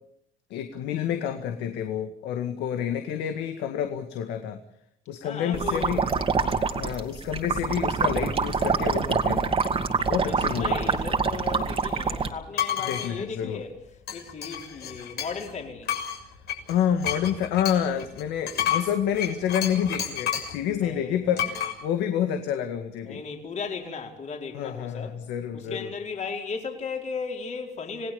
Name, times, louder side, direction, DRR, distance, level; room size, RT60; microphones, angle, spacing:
voice 1, 0.5-4.6 5.1-6.0 6.7-9.5 10.0-10.8 12.8-13.6 16.7-23.2 24.5-25.9, left 9 dB, 85° left, 2.0 m, -28 dB
voice 2, 5.2-6.1 10.0-13.7 14.1-15.9 20.8-21.5 23.0-25.2 25.5-28.1, left 5 dB, 45° left, 4.5 m, -36 dB
sound 1, 5.5-12.3, right 5 dB, 35° right, 2.3 m, -25 dB
sound 2, 12.5-13.1 14.1-15.5 15.9-20.6 21.4-21.7, left 9 dB, 70° left, 6.6 m, -30 dB
27.5 x 18.0 x 7.0 m
cardioid pair, 110°, 17 cm